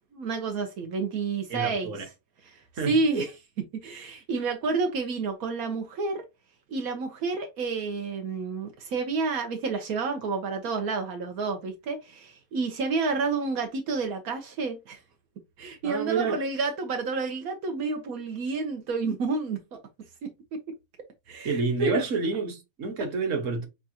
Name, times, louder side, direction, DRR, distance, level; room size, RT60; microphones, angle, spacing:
voice 1, 0.1-1.9 2.4-3.3 3.8-6.2 6.7-15.0 15.6-19.8 20.5-20.6 21.3-22.0, right 4 dB, 90° right, 1.3 m, -29 dB
voice 2, 1.5-2.1 2.8-2.9 15.8-16.4 21.4-23.7, right 4 dB, 65° right, 1.5 m, -28 dB
6.5 x 2.5 x 2.7 m
omnidirectional pair, 1.5 m